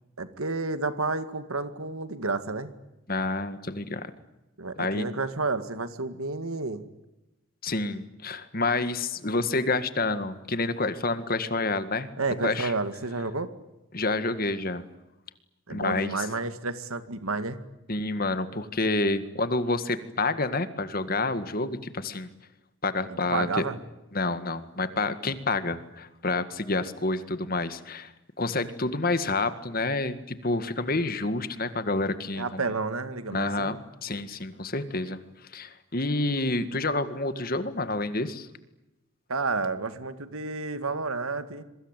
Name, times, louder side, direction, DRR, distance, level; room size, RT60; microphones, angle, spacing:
voice 1, 0.2-2.7 4.6-6.8 12.2-13.5 15.7-17.6 23.1-23.8 32.4-33.8 39.3-41.6, right 3 dB, 90° right, 11 dB, 2.1 m, -30 dB
voice 2, 3.1-4.1 4.8-5.1 7.6-12.1 12.4-12.7 13.9-14.8 15.7-16.3 17.9-22.3 22.8-23.6 24.1-28.1 28.4-32.6 33.3-38.5, left 2 dB, 45° left, 11 dB, 1.9 m, -28 dB
27.0 x 23.0 x 9.1 m, 0.98 s
head